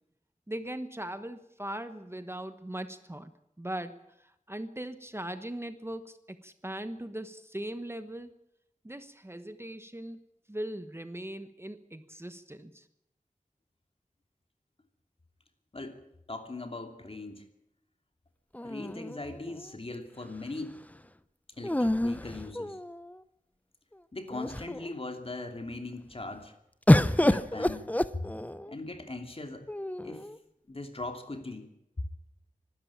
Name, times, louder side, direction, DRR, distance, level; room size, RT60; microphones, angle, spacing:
voice 1, 0.5-3.3 3.6-8.3 8.8-10.2 10.5-12.9, right 1 dB, 20° right, 10 dB, 1.1 m, -39 dB
voice 2, 16.3-17.4 18.6-20.8 21.6-22.8 24.1-26.5 27.2-28.2 28.7-29.7 30.0-30.3 30.7-31.7, left 2 dB, 45° left, 5 dB, 2.9 m, -40 dB
sound 1, 18.5-19.7 21.6-23.2 23.9-24.0 24.3-24.9 26.9-28.7 29.7-30.4, left 1 dB, 10° left, 0.8 m, -27 dB
25.0 x 12.5 x 8.7 m, 0.82 s
wide cardioid pair, 70°, 14 cm